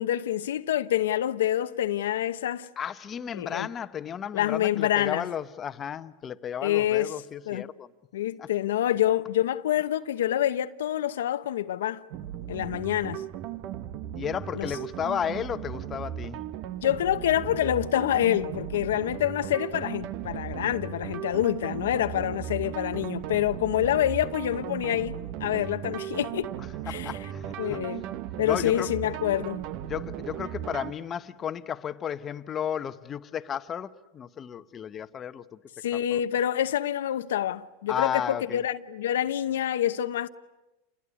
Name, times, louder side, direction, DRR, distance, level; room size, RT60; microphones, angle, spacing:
voice 1, 0.0-2.7 3.3-3.7 4.3-5.3 6.6-7.1 7.5-7.7 8.1-12.0 12.5-13.2 14.5-14.7 16.8-26.5 26.9-27.1 27.6-28.0 28.4-29.6 35.8-40.3, left 12 dB, 85° left, 0.9 m, -27 dB
voice 2, 2.8-7.9 8.4-8.5 14.1-16.4 26.9-27.8 28.4-28.9 29.8-35.6 35.9-36.2 37.9-38.6, left 8 dB, 25° left, 1.1 m, -33 dB
sound 1, 12.1-30.9, right 11 dB, 50° right, 0.9 m, -36 dB
28.5 x 20.5 x 9.9 m
supercardioid pair, 135°, 0 cm